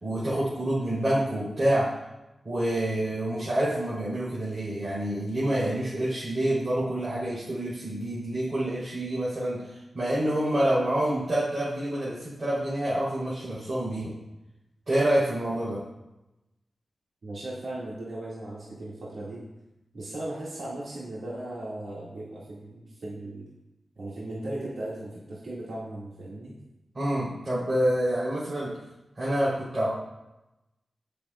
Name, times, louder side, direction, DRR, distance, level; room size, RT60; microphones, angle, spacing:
voice 1, 0.0-1.9 2.4-14.1 14.9-15.8 26.9-28.7 29.2-29.9, right 1 dB, 45° right, -9 dB, 3.8 m, -27 dB
voice 2, 17.2-19.4 19.9-23.5 24.0-26.5, right 1 dB, 75° right, -7 dB, 2.2 m, -37 dB
17.0 x 6.8 x 2.5 m, 0.95 s
wide cardioid pair, 75°, 0 cm